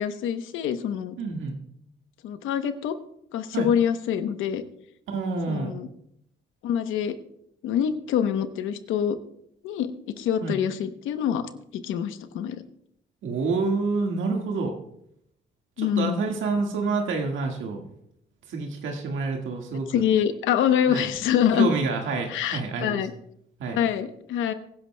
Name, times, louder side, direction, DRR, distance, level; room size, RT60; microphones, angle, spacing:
voice 1, 0.0-1.2 2.2-3.0 3.3-4.6 5.5-5.9 6.6-7.1 7.6-9.2 9.6-12.6 15.8-16.2 19.9-21.7 22.3-23.1 23.7-24.5, left 9 dB, 90° left, 10 dB, 0.9 m, -25 dB
voice 2, 1.2-1.6 3.5-3.7 5.1-5.7 10.4-10.6 13.2-14.7 15.8-17.8 18.5-20.1 20.9-21.1 21.5-23.0 23.6-23.8, right 4 dB, 80° right, 2 dB, 1.7 m, -28 dB
24.5 x 10.5 x 2.2 m, 0.75 s
cardioid pair, 90°, 20 cm